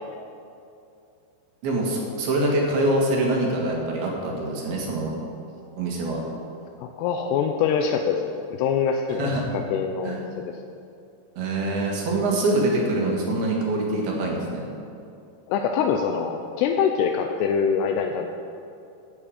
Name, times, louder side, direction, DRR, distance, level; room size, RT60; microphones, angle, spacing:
voice 1, 1.6-5.1 5.8-6.2 9.2-9.4 10.0-10.2 11.4-14.6, right 2 dB, 70° right, -1 dB, 3.7 m, -24 dB
voice 2, 6.8-10.5 15.5-18.3, left 6 dB, 85° left, 4 dB, 2.7 m, -24 dB
15.5 x 7.7 x 5.0 m, 2.6 s
omnidirectional pair, 4.7 m